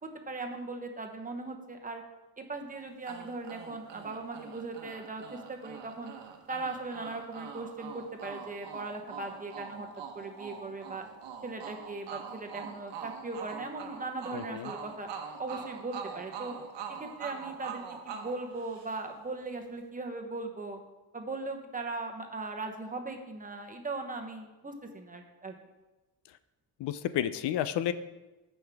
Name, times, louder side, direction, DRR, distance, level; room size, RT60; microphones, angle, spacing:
voice 1, 0.0-2.0 2.4-6.1 6.5-9.9 10.1-11.1 11.4-15.1 15.4-16.5 17.0-20.8 21.1-25.5, right 3 dB, 20° right, 4 dB, 0.9 m, -39 dB
sound 1, 3.1-19.3, right 7 dB, 85° right, 1.2 m, -44 dB
voice 2, 14.3-14.7 26.8-27.9, left 11 dB, 75° left, 13 dB, 0.6 m, -31 dB
14.5 x 5.5 x 3.5 m, 1.1 s
cardioid pair, 145°, 42 cm